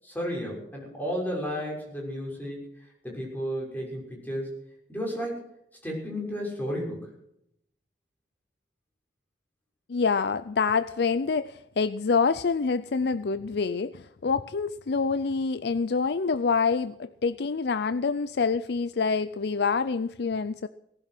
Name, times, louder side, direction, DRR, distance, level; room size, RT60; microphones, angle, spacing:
voice 1, 0.0-2.6 3.0-4.6 4.9-5.5 5.8-7.1, equal, 10° left, -2 dB, 6.4 m, -33 dB
voice 2, 9.9-20.7, left 5 dB, 65° left, 14 dB, 0.5 m, -26 dB
19.0 x 11.0 x 6.0 m, 0.77 s
head